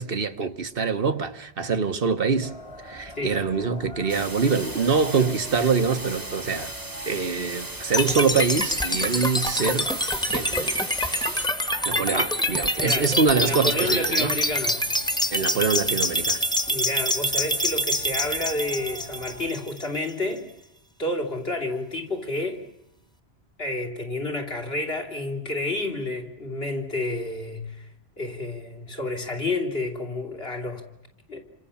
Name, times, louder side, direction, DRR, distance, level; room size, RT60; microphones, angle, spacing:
voice 1, 0.0-2.5 2.8-6.7 7.1-9.9 10.3-10.8 11.8-14.3 15.3-16.4, right 5 dB, 60° right, 1.4 m, -24 dB
sound 1, 2.4-19.5, equal, 30° left, 1.6 m, -44 dB
sound 2, 4.1-11.5, right 2 dB, 20° right, 1.2 m, -37 dB
sound 3, 7.9-20.0, equal, 5° left, 1.3 m, -26 dB
voice 2, 12.8-14.9 16.7-20.5 21.0-22.6 23.6-27.9 28.2-30.8 31.3-31.4, left 2 dB, 70° left, 3.5 m, -30 dB
28.0 x 26.0 x 7.1 m
omnidirectional pair, 1.0 m